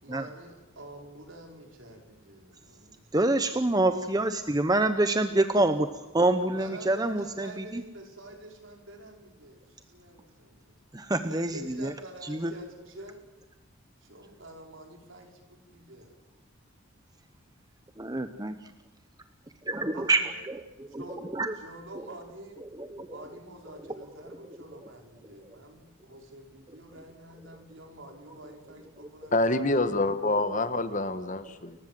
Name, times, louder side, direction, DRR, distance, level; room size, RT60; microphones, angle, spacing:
voice 1, 0.0-3.1 3.6-3.7 6.5-10.7 11.4-13.2 14.0-16.2 19.9-20.5 20.9-21.3 21.6-22.6 23.1-29.8, right 1 dB, 65° right, 5.0 m, -48 dB
voice 2, 3.1-5.9 6.1-7.8 10.9-11.9 12.2-12.5 18.0-18.6 19.7-20.6 20.9-21.0 21.3-21.5 22.8-23.2 30.3-30.4, right 2 dB, 20° right, 0.8 m, -26 dB
voice 3, 29.3-31.7, left 2 dB, 35° left, 1.3 m, -26 dB
29.5 x 15.5 x 7.6 m
head